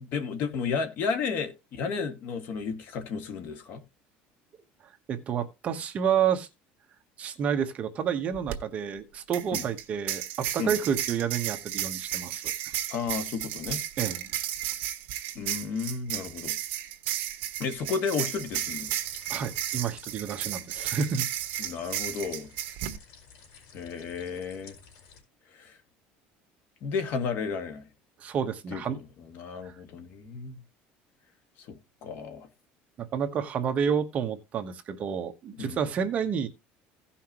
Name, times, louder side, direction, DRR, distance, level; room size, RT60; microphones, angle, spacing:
voice 1, 0.1-3.8 9.5-9.7 10.6-10.8 12.9-13.8 15.4-16.5 17.6-18.9 21.6-22.5 23.7-24.8 25.5-25.8 26.8-27.9 28.7-30.6 31.7-31.8 32.0-32.5 35.6-35.8, left 5 dB, 50° left, 1.9 m, -33 dB
voice 2, 5.1-6.5 7.2-12.8 14.0-14.3 19.3-21.3 28.2-29.0 29.6-29.8 33.0-36.5, right 7 dB, 35° right, 1.1 m, -30 dB
sound 1, 8.3-8.6 9.3-23.0, right 12 dB, 55° right, 1.4 m, -33 dB
sound 2, 18.4-25.2, left 6 dB, 70° left, 4.6 m, -53 dB
16.5 x 5.7 x 3.0 m
cardioid pair, 155°, 4 cm